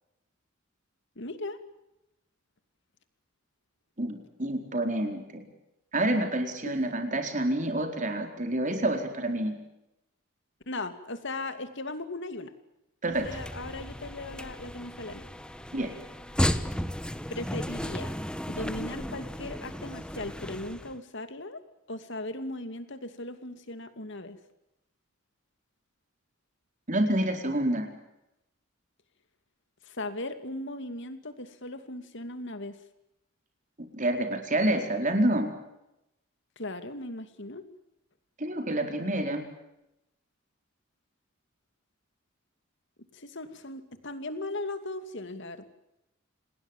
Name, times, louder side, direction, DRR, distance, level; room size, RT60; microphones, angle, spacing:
voice 1, 1.2-1.6 6.7-6.8 10.7-12.5 13.1-15.2 17.3-18.2 18.5-21.6 21.9-24.4 29.8-32.8 36.6-37.6 43.1-45.6, left 2 dB, 60° left, 9 dB, 2.6 m, -38 dB
voice 2, 4.0-5.5 5.9-9.6 13.0-13.3 15.7-15.9 26.9-27.9 33.9-35.5 38.4-39.5, right 1 dB, 40° right, 5 dB, 4.4 m, -28 dB
sound 1, 13.1-21.0, equal, 5° left, 1.2 m, -34 dB
28.5 x 20.0 x 7.5 m, 0.89 s
head